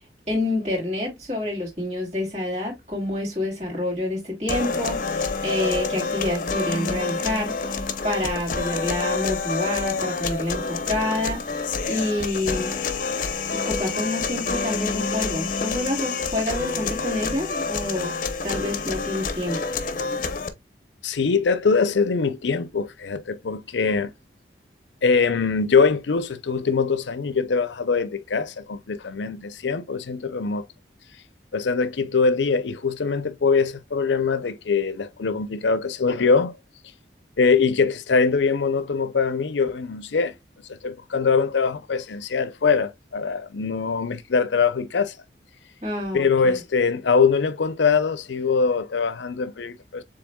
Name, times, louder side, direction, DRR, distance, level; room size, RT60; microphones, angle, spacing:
voice 1, 0.3-7.6 8.0-12.7 13.5-18.1 18.4-19.6 45.8-46.6, left 1 dB, 40° right, 3.2 m, -28 dB
sound 1, 4.5-20.5, left 4 dB, 45° left, 0.7 m, -28 dB
voice 2, 21.0-24.1 25.0-30.7 31.5-36.5 37.4-40.3 40.7-45.2 46.1-50.0, left 5 dB, 85° left, 0.6 m, -22 dB
7.0 x 3.4 x 2.2 m
head